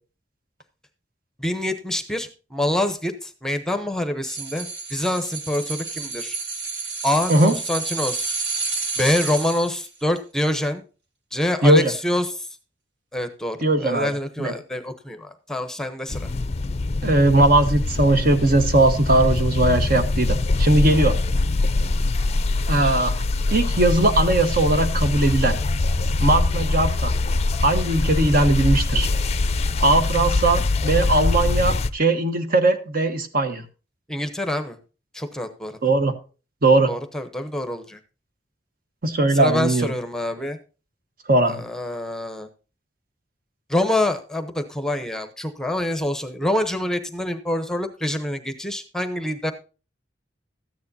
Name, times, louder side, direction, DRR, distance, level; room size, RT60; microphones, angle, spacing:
voice 1, 1.4-6.4 7.0-8.4 9.0-10.8 11.3-12.5 13.1-16.3 34.1-34.8 35.1-35.8 36.9-38.0 39.3-40.6 41.5-42.5 43.7-49.5, left 1 dB, 5° left, 8 dB, 0.8 m, -26 dB
sound 1, 4.2-9.9 10.2-10.3, right 4 dB, 70° right, 1.7 m, -30 dB
voice 2, 13.6-14.1 14.4-14.5 17.0-21.2 22.7-23.2 23.5-25.6 26.2-27.1 27.6-29.1 29.8-33.6 35.8-36.1 36.6-36.9 39.0-39.9 41.3-41.6, right 2 dB, 55° right, 8 dB, 1.2 m, -19 dB
sound 2, 16.1-31.9, left 2 dB, 35° left, 0.5 m, -23 dB
13.5 x 9.5 x 2.7 m, 0.34 s
head